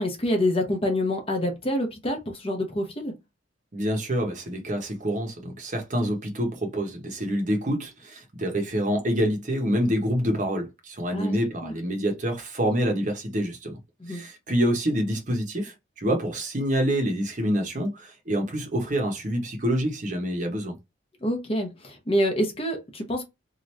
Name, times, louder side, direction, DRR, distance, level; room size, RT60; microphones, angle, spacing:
voice 1, 0.0-3.1 11.1-11.4 11.6-11.7 14.0-14.2 21.2-23.2, left 1 dB, 30° left, 0.7 m, -27 dB
voice 2, 3.7-13.8 14.1-20.8, equal, 40° right, 0.9 m, -27 dB
2.9 x 2.5 x 3.2 m
head